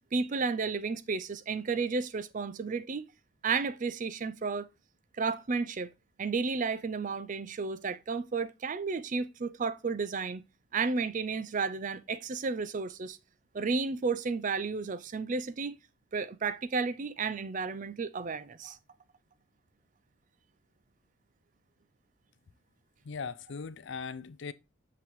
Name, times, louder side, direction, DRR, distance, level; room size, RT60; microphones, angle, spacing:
voice 1, 0.1-3.0 3.4-4.7 5.2-5.9 6.2-10.4 10.7-13.2 13.5-15.8 16.1-18.8, right 4 dB, 35° right, 0.4 m, -32 dB
voice 2, 23.0-24.5, left 5 dB, 60° left, 0.4 m, -39 dB
6.8 x 5.8 x 3.1 m
head